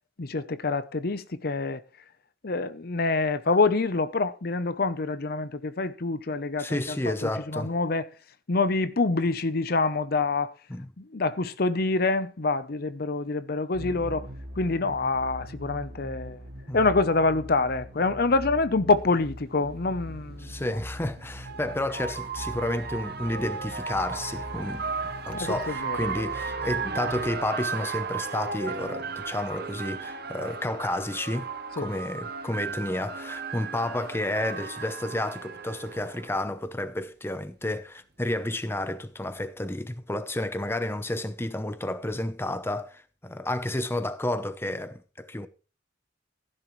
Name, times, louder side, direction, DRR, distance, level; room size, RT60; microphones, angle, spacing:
voice 1, 0.2-1.8 2.4-8.1 8.5-10.5 11.0-14.3 14.6-16.4 16.7-20.6 25.3-26.0 31.8-31.9, left 3 dB, 55° left, 0.7 m, -26 dB
voice 2, 6.6-7.7 10.7-10.9 16.7-16.8 20.4-24.9 25.3-31.5 31.8-45.5, left 1 dB, 15° left, 0.7 m, -31 dB
sound 1, 13.7-27.4, equal, 90° right, 2.5 m, -42 dB
sound 2, 19.3-19.4 20.8-36.4, right 5 dB, 55° right, 0.8 m, -35 dB
15.5 x 10.5 x 3.2 m
head